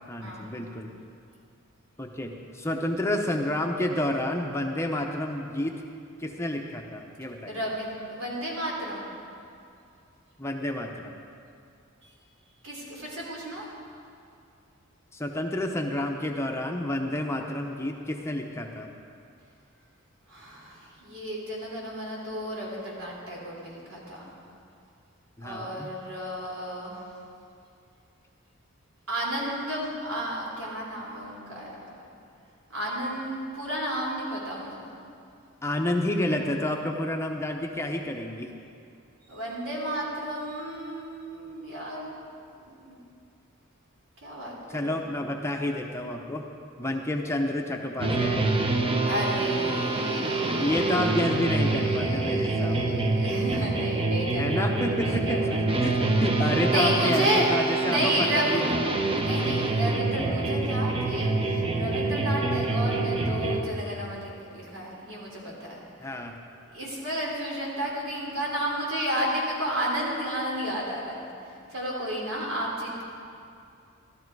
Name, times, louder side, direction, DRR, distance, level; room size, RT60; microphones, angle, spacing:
voice 1, 0.1-0.9 2.0-5.8 6.2-7.8 10.4-11.2 15.1-18.9 25.4-25.9 35.6-38.5 44.7-46.4 46.8-48.6 50.6-53.1 54.4-55.5 55.8-58.9 66.0-66.3, left 1 dB, 15° left, 2 dB, 0.7 m, -30 dB
voice 2, 7.5-9.0 12.0-12.1 12.6-13.6 20.3-24.3 25.4-27.0 29.1-31.8 32.7-34.9 39.3-42.2 42.6-43.0 44.2-45.1 49.0-55.6 56.0-56.2 56.7-58.8 59.2-65.8 66.7-71.2 71.7-73.0, right 1 dB, 75° right, -3 dB, 3.4 m, -32 dB
sound 1, 48.0-63.6, right 3 dB, 25° right, 0.7 m, -26 dB
13.5 x 13.0 x 4.7 m, 2.5 s
head